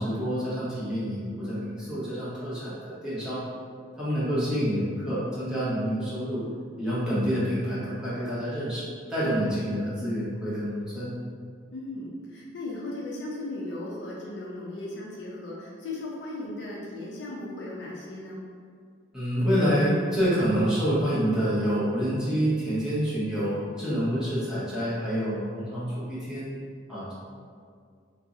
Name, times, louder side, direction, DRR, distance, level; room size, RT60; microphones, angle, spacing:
voice 1, 0.0-3.4 4.0-6.4 6.8-8.8 9.1-11.1 19.1-26.5 26.9-27.1, equal, 5° right, -11 dB, 0.8 m, -27 dB
voice 2, 11.7-18.4, left 2 dB, 60° left, -4 dB, 0.5 m, -37 dB
2.6 x 2.0 x 3.6 m, 2.1 s
head